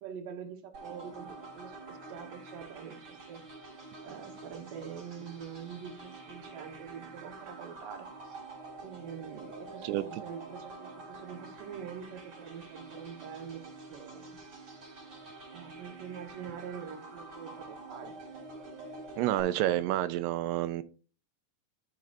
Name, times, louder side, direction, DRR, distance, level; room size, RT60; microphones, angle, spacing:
voice 1, 0.0-3.4 4.0-8.4 8.8-14.4 15.5-18.2, right 7 dB, 65° right, 4 dB, 2.6 m, -45 dB
sound 1, 0.7-19.4, right 3 dB, 30° right, 4.2 m, -47 dB
voice 2, 19.2-20.8, right 14 dB, 85° right, 12 dB, 2.6 m, -29 dB
13.0 x 6.5 x 2.6 m, 0.37 s
omnidirectional pair, 4.7 m